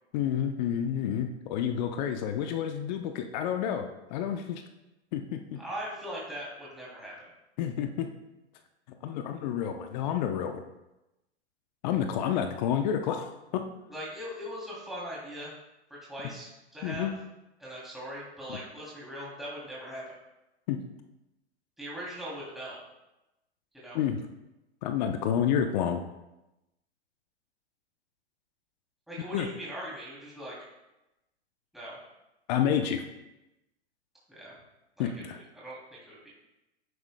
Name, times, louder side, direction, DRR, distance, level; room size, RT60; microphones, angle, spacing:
voice 1, 0.1-4.6 5.1-5.6 7.6-8.1 9.0-10.6 11.8-13.7 16.8-17.1 18.5-18.6 20.7-20.8 23.9-24.2 24.8-26.0 29.3-29.5 32.5-33.0 35.0-35.4, left 9 dB, 40° left, 6 dB, 0.8 m, -29 dB
voice 2, 5.6-7.3 13.9-15.5 15.9-17.1 17.6-20.1 21.8-22.8 23.7-24.0 29.1-30.6 31.7-32.0 34.3-34.5 35.0-35.3 35.5-36.3, equal, ahead, -7 dB, 2.8 m, -40 dB
11.0 x 9.5 x 2.2 m, 0.95 s
hypercardioid pair, 120°, 34 cm